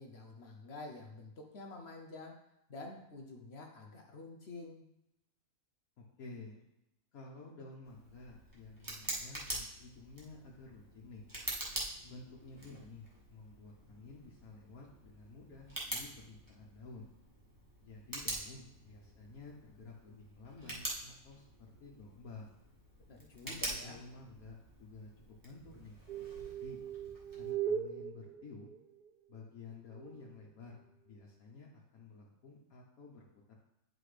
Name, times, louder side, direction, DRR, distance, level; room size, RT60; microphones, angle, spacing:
voice 1, 0.0-2.4 2.7-4.9 23.1-24.0, left 2 dB, 55° left, 2 dB, 0.9 m, -49 dB
voice 2, 6.0-6.6 7.1-11.2 12.0-17.1 17.8-22.6 23.4-26.0 26.4-26.8 27.4-28.7 29.3-33.5, left 3 dB, 75° left, -3 dB, 1.4 m, -52 dB
Tick, 7.8-27.5, right 1 dB, 15° right, 1.7 m, -46 dB
sound 1, 26.1-29.0 29.9-30.4, right 8 dB, 70° right, 0.5 m, -39 dB
9.7 x 5.0 x 3.3 m, 0.86 s
omnidirectional pair, 1.5 m